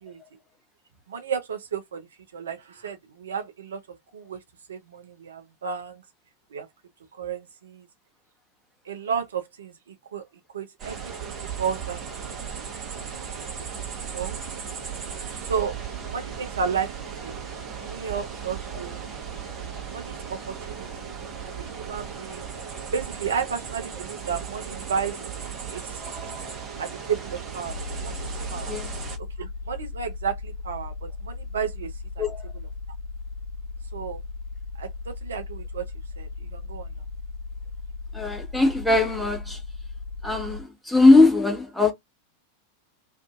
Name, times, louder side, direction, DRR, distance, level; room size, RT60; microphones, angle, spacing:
voice 1, 1.1-2.1 2.3-4.4 4.7-6.0 6.5-6.7 7.1-7.9 8.8-10.3 10.5-12.4 14.1-14.4 15.5-15.8 16.1-17.4 17.8-19.1 19.9-20.9 21.4-22.5 22.9-25.3 25.7-26.0 26.8-28.7 29.4-32.2 32.5-32.7 33.9-34.2 34.7-35.8 36.2-36.9, right 6 dB, 65° right, 0.5 m, -33 dB
sound 1, 10.8-29.2, right 7 dB, 30° right, 0.9 m, -36 dB
sound 2, 27.7-40.6, left 4 dB, 60° left, 0.5 m, -37 dB
voice 2, 38.1-39.6 40.2-41.9, left 2 dB, 5° left, 0.9 m, -20 dB
2.6 x 2.4 x 2.3 m
figure-of-eight pair, 90°, 0 cm